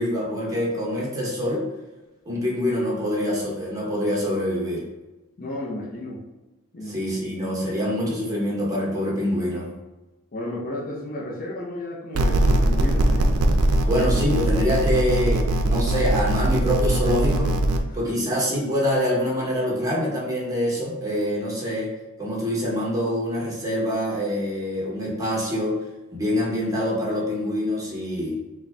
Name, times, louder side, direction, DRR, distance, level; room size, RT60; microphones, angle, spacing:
voice 1, 0.0-1.7 2.2-4.8 6.8-9.7 13.9-17.5 17.9-21.9 22.2-25.8 26.1-28.4, equal, 15° right, -5 dB, 1.1 m, -25 dB
voice 2, 5.4-6.2 6.7-7.0 10.3-13.4 17.9-18.0, left 1 dB, 40° left, -4 dB, 0.7 m, -33 dB
sound 1, 12.2-17.8, right 1 dB, 80° right, 0.4 m, -21 dB
3.9 x 2.3 x 3.3 m, 1.1 s
head